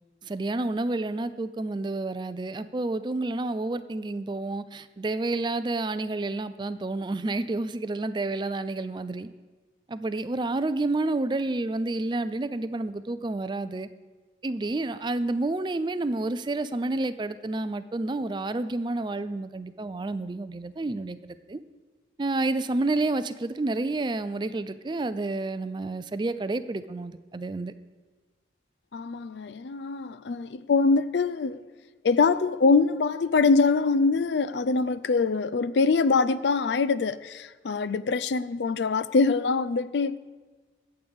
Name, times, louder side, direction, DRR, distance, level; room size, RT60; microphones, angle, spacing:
voice 1, 0.2-9.3 9.9-13.9 14.4-21.6 22.2-27.7, right 2 dB, 25° right, 0.4 m, -29 dB
voice 2, 28.9-31.6 32.0-40.2, left 4 dB, 75° left, 0.4 m, -24 dB
22.5 x 7.9 x 3.5 m
head